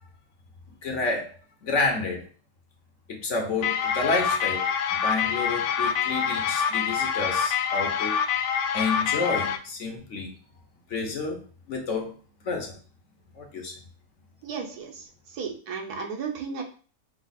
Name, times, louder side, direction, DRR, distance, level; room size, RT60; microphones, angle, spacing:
voice 1, 0.8-1.3 1.6-2.3 3.1-4.7 4.9-8.2 8.7-10.3 10.9-11.4 11.7-12.1 12.4-12.8 13.4-13.7, left 3 dB, 55° left, 2 dB, 1.2 m, -29 dB
sound 1, 3.6-9.6, left 7 dB, 75° left, 1.0 m, -26 dB
voice 2, 14.4-16.6, right 5 dB, 85° right, 3 dB, 1.5 m, -34 dB
5.4 x 2.4 x 4.0 m, 0.39 s
omnidirectional pair, 1.6 m